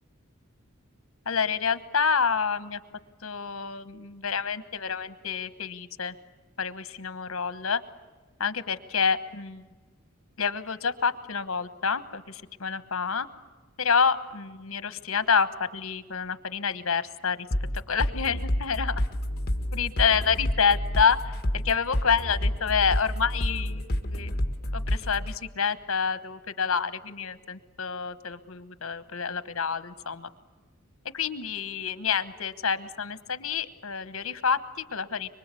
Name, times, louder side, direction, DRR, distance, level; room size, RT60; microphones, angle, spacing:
voice 1, 1.3-2.8 3.2-6.1 6.6-7.8 8.4-9.6 10.4-13.3 13.8-15.5 15.7-17.5 17.9-18.9 19.7-24.3 24.7-30.3 31.1-35.3, left 6 dB, 75° left, 12 dB, 1.2 m, -28 dB
sound 1, 17.5-25.3, left 1 dB, 45° left, 1.6 m, -28 dB
25.0 x 23.5 x 8.4 m, 1.3 s
head